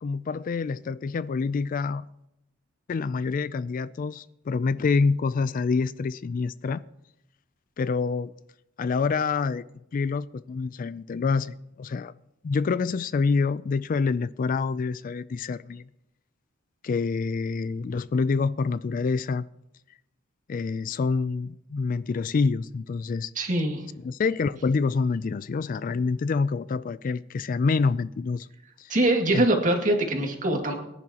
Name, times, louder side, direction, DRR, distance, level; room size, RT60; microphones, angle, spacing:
voice 1, 0.0-2.0 2.9-6.8 7.8-8.3 8.8-9.6 9.9-12.1 12.4-15.8 16.8-19.4 20.5-23.3 24.0-28.5 28.8-28.9 29.3-29.5, left 4 dB, 45° left, 0.3 m, -27 dB
voice 2, 23.4-23.8 28.9-30.7, right 1 dB, 40° right, 2.2 m, -23 dB
23.0 x 11.0 x 2.9 m
head